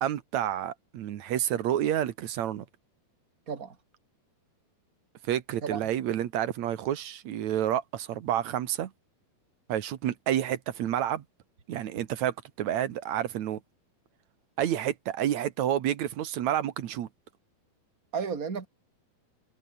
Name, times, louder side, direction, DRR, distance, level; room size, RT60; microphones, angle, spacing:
voice 1, 0.0-2.6 5.3-8.9 9.7-11.2 11.7-13.6 14.6-17.1, right 11 dB, 60° right, 2.1 m, -29 dB
voice 2, 18.1-18.7, right 6 dB, 25° right, 2.6 m, -33 dB
omnidirectional pair, 4.5 m